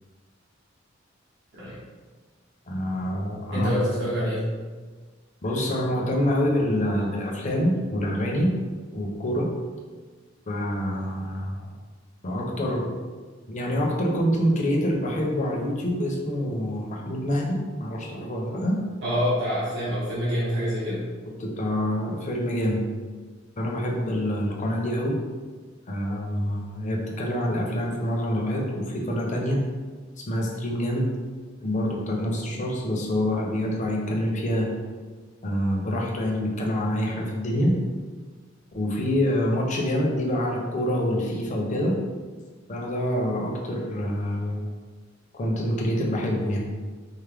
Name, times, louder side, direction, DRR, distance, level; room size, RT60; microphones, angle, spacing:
voice 1, 2.7-3.7 5.4-8.5 8.9-9.5 10.5-11.7 12.2-13.0 13.5-18.8 21.4-22.8 23.6-25.2 25.9-29.6 30.3-31.1 31.6-34.7 35.4-37.7 38.7-42.0 42.7-44.6 45.3-46.6, equal, 40° left, -1 dB, 0.6 m, -26 dB
voice 2, 3.5-4.5 19.0-21.1, equal, 60° right, -10 dB, 1.1 m, -26 dB
4.6 x 2.1 x 3.4 m, 1.4 s
head